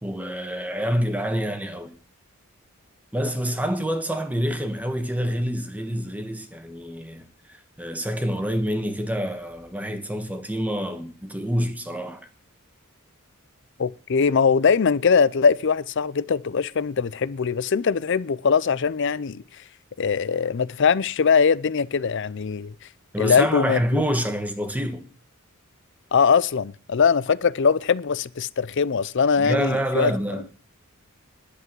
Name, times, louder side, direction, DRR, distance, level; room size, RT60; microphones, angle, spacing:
voice 1, 0.0-1.9 3.1-12.3 23.1-25.1 29.4-30.5, equal, 5° right, 1.4 m, -27 dB
voice 2, 13.8-19.4 20.0-22.7 23.2-24.0 26.1-30.1, left 6 dB, 60° left, 0.5 m, -21 dB
11.0 x 8.2 x 7.5 m
head